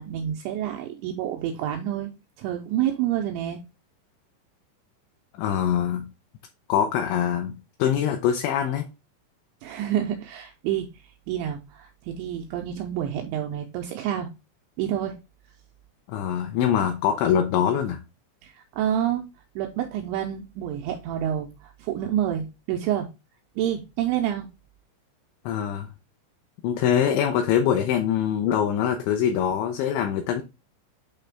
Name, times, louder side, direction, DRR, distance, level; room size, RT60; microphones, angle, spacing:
voice 1, 0.0-2.1 2.4-3.6 9.6-10.9 11.3-14.3 14.8-15.2 18.4-19.2 19.6-23.1 23.6-24.5, right 10 dB, 90° right, 2.7 m, -28 dB
voice 2, 5.4-6.1 6.7-8.9 16.1-18.0 25.5-25.9 26.6-30.4, left 9 dB, 85° left, 2.6 m, -23 dB
8.8 x 3.3 x 3.5 m
omnidirectional pair, 6.0 m